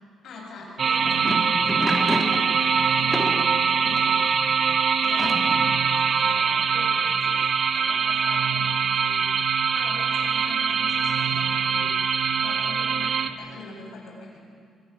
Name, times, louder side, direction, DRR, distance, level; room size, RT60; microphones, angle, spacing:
voice 1, 0.2-7.4 7.7-9.3 9.7-11.9 12.4-14.4, left 3 dB, 70° left, -1 dB, 7.6 m, -43 dB
sound 1, 0.7-4.3 5.0-5.8, equal, 5° left, 3.1 m, -30 dB
sound 2, 0.8-13.3, right 6 dB, 55° right, 1.1 m, -23 dB
24.5 x 24.0 x 6.4 m, 2.2 s
cardioid pair, 90°, 0 cm